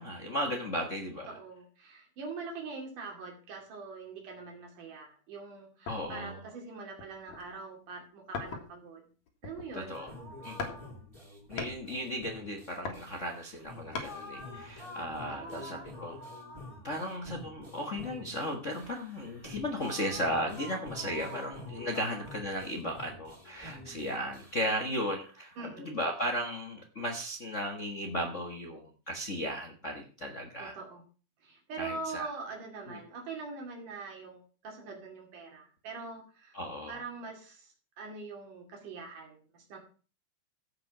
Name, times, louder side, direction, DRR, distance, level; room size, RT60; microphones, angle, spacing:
voice 1, 0.0-1.3 5.9-6.4 9.7-10.1 10.4-10.7 11.5-16.2 16.8-30.8 31.8-32.3 32.9-33.0 36.5-37.0, equal, 50° left, 3 dB, 0.9 m, -35 dB
voice 2, 1.3-9.1 9.4-10.0 10.7-11.0 15.3-15.7 21.9-22.0 25.6-26.0 30.6-31.0 31.4-36.6 36.9-39.8, right 4 dB, 90° right, 1 dB, 4.1 m, -43 dB
sound 1, 5.9-6.3 6.9-7.6 8.3-8.9 9.3-10.0 10.6-10.8 11.1-11.8 12.6-14.1 14.7-14.8, left 4 dB, 65° left, 3.3 m, -40 dB
sound 2, 9.9-25.7, left 1 dB, 10° right, 2.3 m, -47 dB
15.0 x 5.5 x 6.0 m, 0.38 s
omnidirectional pair, 3.5 m